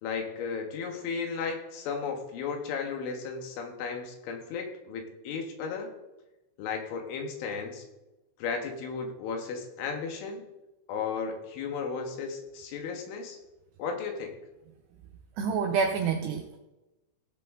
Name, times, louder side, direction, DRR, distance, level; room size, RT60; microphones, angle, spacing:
voice 1, 0.0-5.9 6.6-7.8 8.4-10.4 10.9-13.4 13.8-14.4, left 5 dB, 80° left, 4 dB, 3.8 m, -34 dB
voice 2, 15.4-16.6, right 5 dB, 90° right, 3 dB, 2.4 m, -28 dB
16.5 x 7.7 x 3.7 m, 1.0 s
omnidirectional pair, 5.6 m